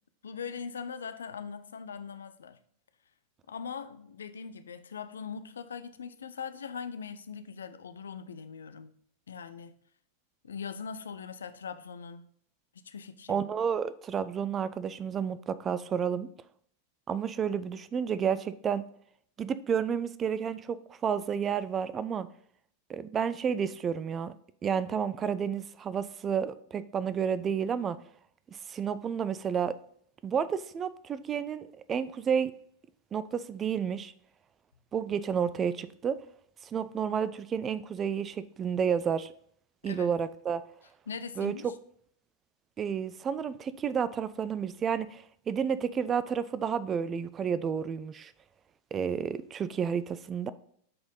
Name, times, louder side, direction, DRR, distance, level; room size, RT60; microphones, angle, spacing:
voice 1, 0.2-2.6 3.5-8.9 9.3-9.7 10.4-12.3 12.7-13.5 39.8-40.1 41.1-41.7, left 6 dB, 70° left, 0.5 m, -41 dB
voice 2, 13.3-16.3 17.1-18.9 19.4-22.3 22.9-24.3 24.6-28.0 28.7-29.8 30.2-32.5 33.1-34.1 34.9-36.2 36.6-39.3 39.8-40.6 41.4-41.5 42.8-48.3 48.9-50.5, right 7 dB, 25° right, 0.4 m, -31 dB
7.6 x 4.1 x 3.9 m
figure-of-eight pair, 90°, 0 cm